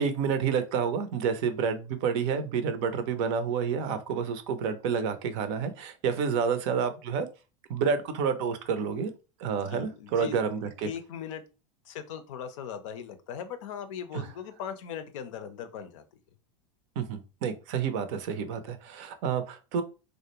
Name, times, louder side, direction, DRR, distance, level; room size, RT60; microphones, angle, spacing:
voice 1, 0.0-7.3 7.7-9.1 9.4-10.9 14.1-14.3 17.0-19.8, right 6 dB, 60° right, 10 dB, 0.5 m, -29 dB
voice 2, 9.7-10.4 10.8-11.4 11.8-16.2, left 8 dB, 70° left, 10 dB, 0.5 m, -39 dB
2.4 x 2.1 x 2.9 m, 0.31 s
hypercardioid pair, 85°, 17 cm